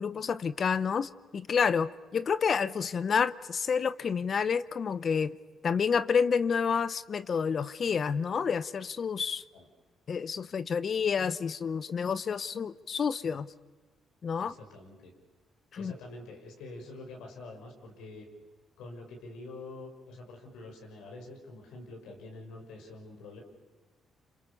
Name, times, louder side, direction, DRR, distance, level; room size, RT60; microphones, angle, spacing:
voice 1, 0.0-5.3 5.6-9.4 10.1-13.5 14.2-14.5 15.7-15.9, left 6 dB, 50° left, 15 dB, 0.8 m, -29 dB
voice 2, 14.4-15.1 15.8-18.3 18.8-23.4, left 2 dB, 90° left, 1 dB, 5.9 m, -46 dB
27.5 x 27.0 x 7.1 m, 1.3 s
cardioid pair, 90°, 0 cm